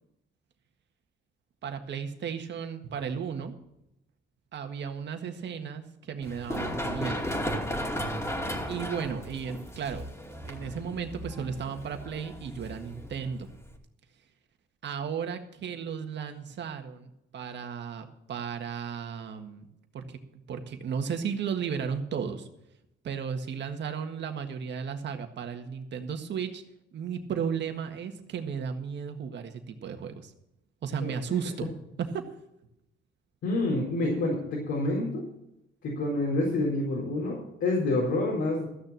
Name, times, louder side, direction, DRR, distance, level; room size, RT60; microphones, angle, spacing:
voice 1, 1.6-3.5 4.5-7.2 8.7-10.1 10.4-13.5 14.8-19.7 19.9-20.2 20.5-22.5 23.0-26.6 26.9-30.3 30.8-31.7 32.0-32.3, right 7 dB, 65° right, 6 dB, 1.7 m, -34 dB
Run, 6.2-13.8, equal, 15° left, 2.6 m, -35 dB
voice 2, 33.4-35.2 35.8-38.7, left 2 dB, 80° left, -4 dB, 4.3 m, -28 dB
14.5 x 6.7 x 7.5 m, 0.83 s
cardioid pair, 90°, 20 cm